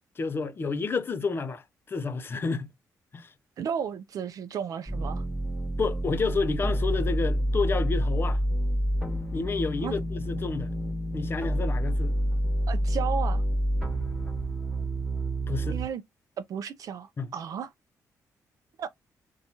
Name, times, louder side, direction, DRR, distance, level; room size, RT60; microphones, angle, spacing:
voice 1, 0.2-1.6 1.9-2.7 3.1-3.3 5.8-8.4 9.3-10.7 11.1-12.2 15.5-15.8 17.2-17.3, left 4 dB, 35° left, 0.4 m, -30 dB
voice 2, 3.6-5.2 9.8-9.9 12.7-13.4 15.7-16.0 16.5-17.7 18.8-18.9, right 7 dB, 65° right, 0.3 m, -33 dB
sound 1, 4.9-15.9, equal, 5° right, 1.1 m, -28 dB
2.6 x 2.2 x 2.8 m
cardioid pair, 95°, 7 cm